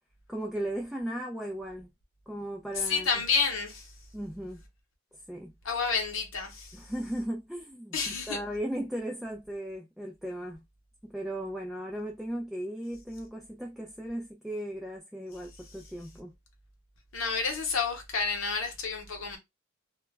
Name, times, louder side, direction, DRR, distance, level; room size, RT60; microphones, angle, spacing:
voice 1, 0.3-1.9 2.3-3.1 4.1-4.6 5.3-5.5 6.7-10.6 11.0-16.3, right 1 dB, ahead, 0.3 m, -36 dB
voice 2, 2.8-3.9 5.6-6.8 7.9-8.4 17.1-19.4, left 5 dB, 80° left, 0.8 m, -30 dB
2.2 x 2.1 x 3.1 m
head